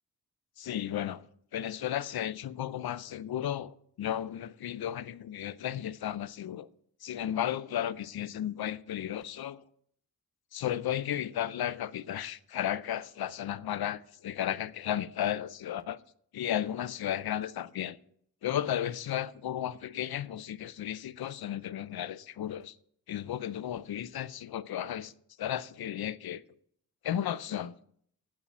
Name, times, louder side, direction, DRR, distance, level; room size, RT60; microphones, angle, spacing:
voice 1, 0.6-1.2 1.5-6.7 7.0-9.6 10.5-16.0 16.3-18.0 18.4-22.7 23.1-25.1 25.4-26.4 27.0-27.7, left 11 dB, 80° left, 0.6 m, -34 dB
8.9 x 8.7 x 7.2 m
wide cardioid pair, 100°, 37 cm